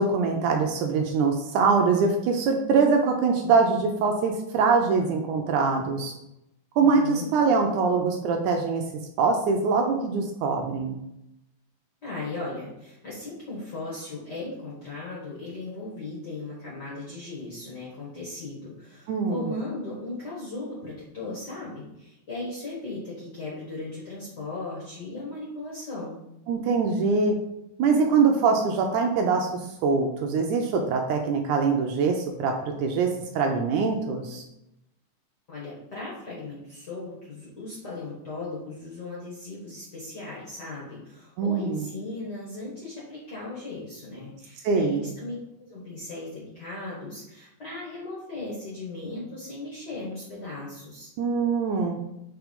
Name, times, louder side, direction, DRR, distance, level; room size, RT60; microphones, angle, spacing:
voice 1, 0.0-6.1 6.8-8.8 9.2-11.0 19.1-19.4 26.5-27.4 27.8-34.4 41.4-41.9 44.6-45.0 51.2-52.0, right 4 dB, 80° right, 3 dB, 1.9 m, -23 dB
voice 2, 6.8-7.3 12.0-26.2 35.5-45.3 45.7-51.1, left 2 dB, 50° left, -6 dB, 1.3 m, -37 dB
4.6 x 4.3 x 5.2 m, 0.85 s
omnidirectional pair, 3.8 m